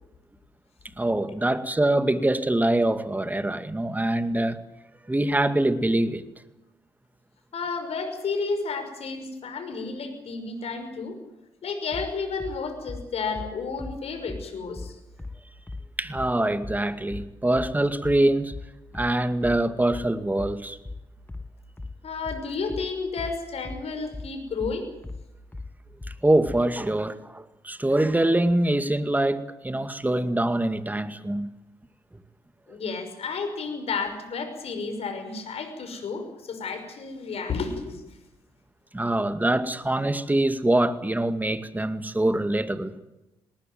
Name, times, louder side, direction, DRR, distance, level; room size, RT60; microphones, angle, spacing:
voice 1, 1.0-4.6 5.1-6.2 16.0-18.5 18.9-20.8 26.2-31.5 38.9-42.9, right 1 dB, 15° right, 11 dB, 2.2 m, -24 dB
voice 2, 7.5-11.2 11.6-15.0 22.0-24.9 32.7-38.0, left 4 dB, 60° left, 7 dB, 5.7 m, -32 dB
sound 1, 11.9-26.7, left 3 dB, 15° left, 1.6 m, -38 dB
19.5 x 19.0 x 9.3 m, 0.97 s
hypercardioid pair, 45°, 12 cm